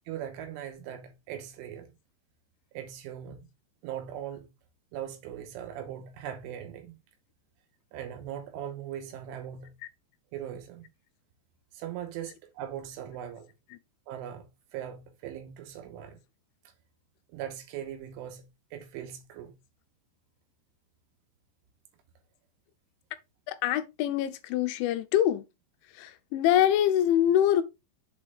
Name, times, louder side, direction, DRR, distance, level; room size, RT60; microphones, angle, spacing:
voice 1, 0.1-1.9 2.8-3.5 3.8-4.5 4.9-7.0 7.9-9.8 10.3-10.9 11.7-13.5 14.1-14.4 14.7-16.2 17.3-18.5 18.7-19.5, right 10 dB, 90° right, 3.5 m, -40 dB
voice 2, 23.5-25.4 26.0-27.6, left 11 dB, 85° left, 3.0 m, -24 dB
7.5 x 5.3 x 3.4 m
omnidirectional pair, 5.5 m